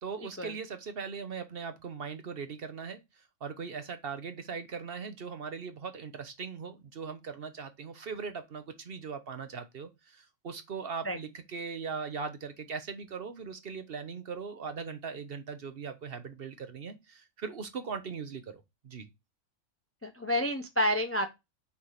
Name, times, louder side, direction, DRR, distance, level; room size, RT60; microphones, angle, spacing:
voice 1, 0.0-3.0 3.4-19.1, right 5 dB, 50° right, 0.9 m, -39 dB
voice 2, 20.0-21.3, equal, 20° left, 0.3 m, -29 dB
6.0 x 3.3 x 5.6 m
omnidirectional pair, 1.4 m